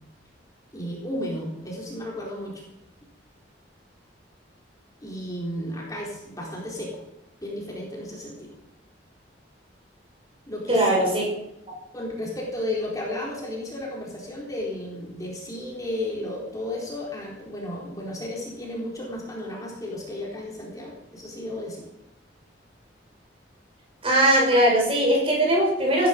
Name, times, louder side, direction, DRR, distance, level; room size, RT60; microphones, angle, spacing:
voice 1, 0.7-2.6 5.0-7.0 7.4-8.5 10.5-11.2 11.9-21.9, left 1 dB, 20° left, -3 dB, 4.2 m, -33 dB
voice 2, 10.7-11.3 24.0-26.1, right 1 dB, 30° right, -1 dB, 5.5 m, -20 dB
17.5 x 11.5 x 5.4 m, 0.84 s
head